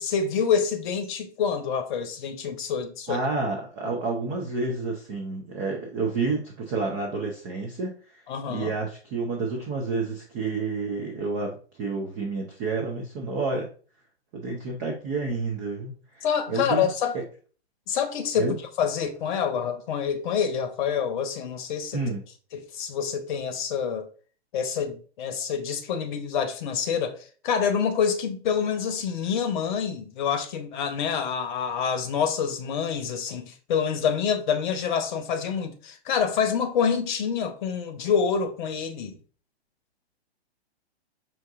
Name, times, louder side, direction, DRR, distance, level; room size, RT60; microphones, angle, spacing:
voice 1, 0.0-3.2 3.8-3.9 8.3-8.7 16.2-17.2 17.9-22.0 22.5-24.1 24.5-39.2, left 7 dB, 45° left, 0.8 m, -27 dB
voice 2, 3.1-7.9 8.5-13.7 14.3-16.9 17.1-17.2 18.4-18.5 21.9-22.2, right 3 dB, 15° right, 0.3 m, -29 dB
5.6 x 2.8 x 2.5 m
figure-of-eight pair, 115°, 33 cm